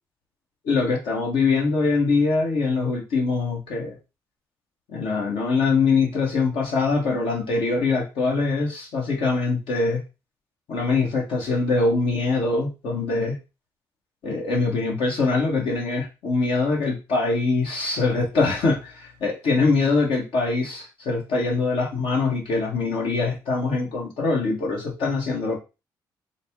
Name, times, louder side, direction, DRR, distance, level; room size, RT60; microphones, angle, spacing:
voice 1, 0.6-4.0 4.9-10.0 10.7-13.4 14.2-25.6, left 3 dB, 80° left, 0 dB, 1.1 m, -23 dB
4.1 x 2.1 x 3.4 m, 0.28 s
supercardioid pair, 60°, 9 cm